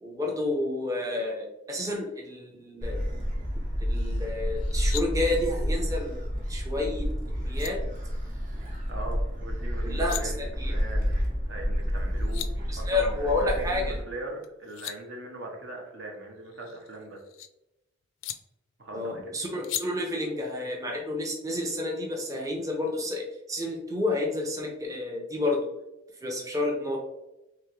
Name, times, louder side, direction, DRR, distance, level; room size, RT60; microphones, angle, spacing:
voice 1, 0.0-3.0 3.8-6.2 6.5-7.8 9.8-10.7 12.7-14.0 18.9-25.7 26.2-27.0, left 2 dB, 15° right, -1 dB, 0.5 m, -30 dB
Gull seagull, 2.8-14.0, equal, 45° right, 1.0 m, -30 dB
sound 1, 4.6-5.1 7.1-7.2 7.5-7.7 9.8-10.2 11.9-12.0 12.2-12.5 14.4-15.0 16.5-17.5 18.2-18.4 19.6-19.8, left 11 dB, 75° left, 0.3 m, -37 dB
voice 2, 8.9-11.2 11.5-12.5 12.8-17.2 18.8-19.4, right 2 dB, 70° right, 1 dB, 0.9 m, -40 dB
3.5 x 3.0 x 3.0 m, 0.91 s
head